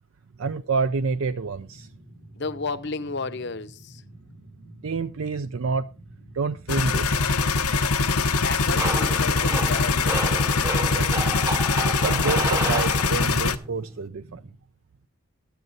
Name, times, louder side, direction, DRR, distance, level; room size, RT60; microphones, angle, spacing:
voice 1, 0.4-1.9 4.8-5.9 6.3-7.4 10.9-11.6 12.0-14.4, right 4 dB, 65° right, 0.5 m, -28 dB
sound 1, 0.7-14.6, right 1 dB, 90° right, 3.4 m, -48 dB
voice 2, 2.4-4.0 8.4-10.2, left 4 dB, 50° left, 0.8 m, -32 dB
sound 2, 6.7-13.6, left 4 dB, 85° left, 0.9 m, -23 dB
sound 3, 8.7-13.5, right 1 dB, 15° right, 0.8 m, -31 dB
13.0 x 9.3 x 3.9 m
head